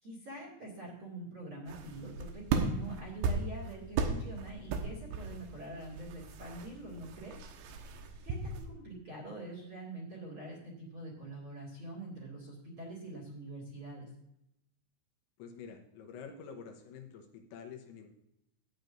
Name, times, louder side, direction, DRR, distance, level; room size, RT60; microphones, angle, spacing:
voice 1, 0.0-7.4 7.8-7.9 8.2-14.1, right 2 dB, 35° right, -3 dB, 2.1 m, -45 dB
sound 1, 1.7-8.7, right 4 dB, 85° right, 3.7 m, -37 dB
voice 2, 15.4-18.1, left 6 dB, 75° left, 3 dB, 3.0 m, -48 dB
14.0 x 9.7 x 2.6 m, 0.83 s
omnidirectional pair, 5.9 m